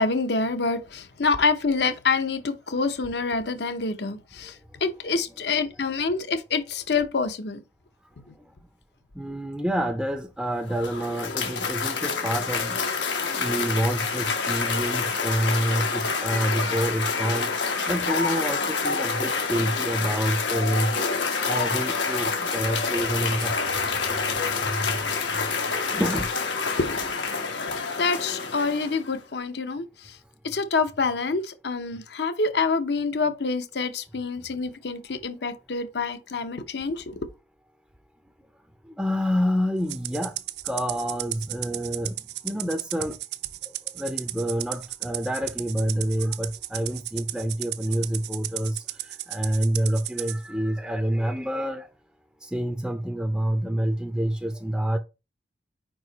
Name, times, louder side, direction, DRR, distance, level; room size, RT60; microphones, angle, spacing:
voice 1, 0.0-7.6 8.3-8.4 26.7-27.0 27.9-30.2 30.4-37.2, left 4 dB, 65° left, 0.8 m, -27 dB
voice 2, 9.2-12.8 13.4-17.5 17.9-20.9 21.5-23.6 24.7-25.0 25.9-26.3 39.0-40.3 40.6-42.1 42.4-43.1 44.0-48.8 49.3-51.9 52.4-55.0, equal, 5° right, 0.5 m, -27 dB
Cheering / Applause, 10.5-29.2, left 5 dB, 85° left, 1.3 m, -27 dB
Rattle (instrument), 39.9-50.4, right 16 dB, 60° right, 0.4 m, -34 dB
5.0 x 4.7 x 3.9 m
head